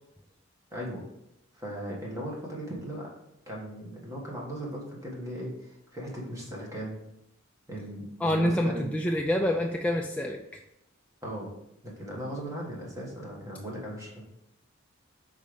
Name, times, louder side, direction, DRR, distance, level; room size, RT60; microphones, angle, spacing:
voice 1, 0.7-1.0 1.5-3.1 3.5-7.0 7.7-8.9 11.2-11.5 11.8-14.2, equal, 15° right, -3 dB, 1.4 m, -38 dB
voice 2, 8.2-10.4, equal, 5° left, 1 dB, 0.3 m, -26 dB
5.3 x 3.8 x 4.9 m, 0.82 s
head